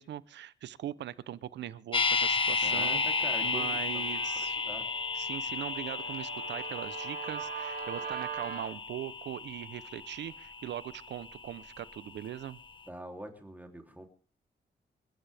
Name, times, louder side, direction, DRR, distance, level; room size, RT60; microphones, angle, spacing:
voice 1, 0.0-3.0 3.4-4.6 5.1-12.6, right 11 dB, 85° right, 0.9 m, -40 dB
sound 1, 1.9-12.0 12.3-12.4, left 4 dB, 30° left, 1.5 m, -33 dB
voice 2, 2.6-4.9 12.9-14.1, right 1 dB, 10° right, 3.3 m, -45 dB
Guitar, 3.2-8.7, right 6 dB, 60° right, 4.2 m, -42 dB
27.5 x 13.0 x 3.6 m
cardioid pair, 95°, 18 cm